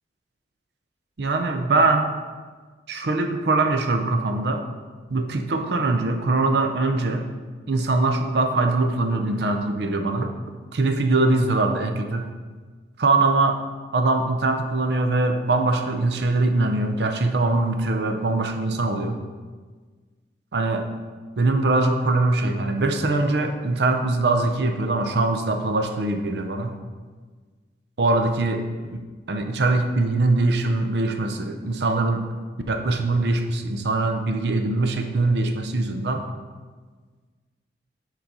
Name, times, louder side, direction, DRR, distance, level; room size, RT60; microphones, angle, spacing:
voice 1, 1.2-2.1 2.9-4.7 5.1-7.3 7.7-10.3 10.7-12.3 13.0-13.6 13.9-19.2 20.5-20.9 21.4-26.7 28.0-29.0 29.3-32.2 32.7-36.2, right 2 dB, 70° right, 5 dB, 0.6 m, -22 dB
7.2 x 3.9 x 5.4 m, 1.4 s
head